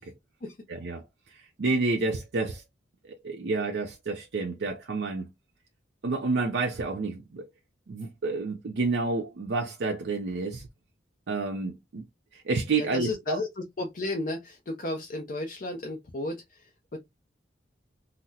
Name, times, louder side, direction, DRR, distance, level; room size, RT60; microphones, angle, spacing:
voice 1, 0.7-2.6 3.0-5.3 6.0-7.5 7.9-10.7 11.3-12.0 12.3-13.4, right 3 dB, 70° right, 0.5 m, -29 dB
voice 2, 12.8-17.0, left 2 dB, 45° left, 0.5 m, -34 dB
3.9 x 2.0 x 2.7 m
head